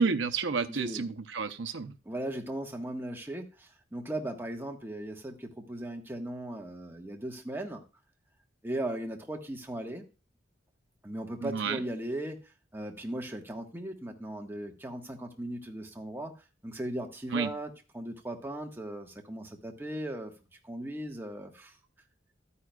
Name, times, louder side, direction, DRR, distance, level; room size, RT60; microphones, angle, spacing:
voice 1, 0.0-2.0 11.4-11.8 17.3-17.5, right 4 dB, 80° right, 0.7 m, -30 dB
voice 2, 0.7-1.1 2.0-7.8 8.6-10.0 11.0-12.4 12.7-16.3 16.6-20.3 20.6-21.7, right 1 dB, 10° right, 1.4 m, -37 dB
12.5 x 9.6 x 2.4 m
head